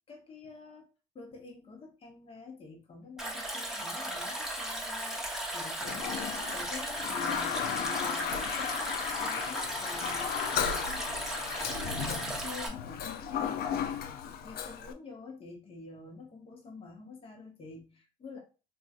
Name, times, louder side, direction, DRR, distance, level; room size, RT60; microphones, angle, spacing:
voice 1, 0.1-0.9 1.1-5.2 5.5-13.8 14.2-18.4, left 4 dB, 35° left, 1 dB, 0.9 m, -48 dB
Stream, 3.2-12.7, right 1 dB, 5° right, 0.9 m, -36 dB
Toilet flush, 5.8-14.9, left 8 dB, 65° left, 0.5 m, -35 dB
4.1 x 2.4 x 2.4 m, 0.33 s
cardioid pair, 110°, 17 cm